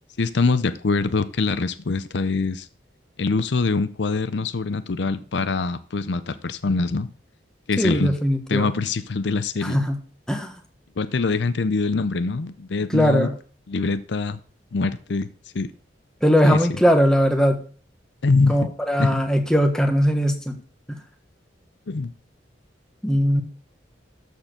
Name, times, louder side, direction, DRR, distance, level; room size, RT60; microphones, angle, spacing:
voice 1, 0.2-2.7 3.2-7.1 7.7-8.1 8.5-9.8 11.0-13.3 13.7-14.4 14.7-15.3 15.5-15.7 16.4-16.6 18.2-18.6 19.0-19.2 21.9-22.1, left 3 dB, 70° left, 13 dB, 0.6 m, -24 dB
voice 2, 7.8-8.7 9.6-10.0 10.3-10.5 12.9-13.3 16.2-17.6 18.5-20.6 20.9-21.0 23.0-23.4, equal, 5° left, 4 dB, 1.4 m, -20 dB
13.0 x 4.4 x 6.6 m, 0.41 s
head